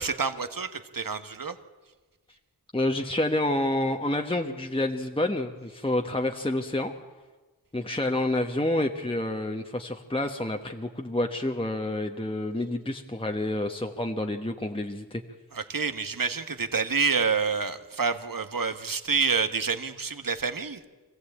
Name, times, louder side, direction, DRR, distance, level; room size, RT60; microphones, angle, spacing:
voice 1, 0.0-1.5 15.5-20.8, right 5 dB, 55° right, 10 dB, 1.4 m, -28 dB
voice 2, 2.7-6.9 7.7-15.2, left 1 dB, 15° left, 3 dB, 1.2 m, -28 dB
24.5 x 15.5 x 8.6 m, 1.3 s
wide cardioid pair, 50°, 39 cm